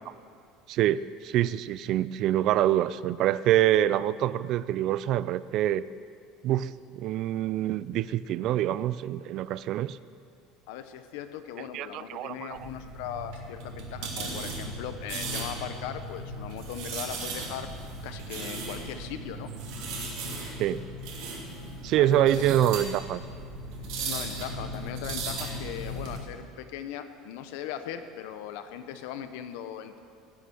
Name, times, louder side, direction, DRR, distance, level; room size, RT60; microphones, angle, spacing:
voice 1, 0.7-5.8 6.4-10.0 11.7-12.6 20.6-20.8 21.8-23.2, right 12 dB, 45° right, 16 dB, 0.3 m, -26 dB
voice 2, 10.7-17.7 18.0-19.5 22.0-22.7 23.9-30.0, left 10 dB, 75° left, 9 dB, 0.9 m, -39 dB
sound 1, 12.5-26.2, right 2 dB, 60° right, 2.8 m, -37 dB
16.5 x 7.6 x 7.0 m, 2.3 s
cardioid pair, 170°, 0 cm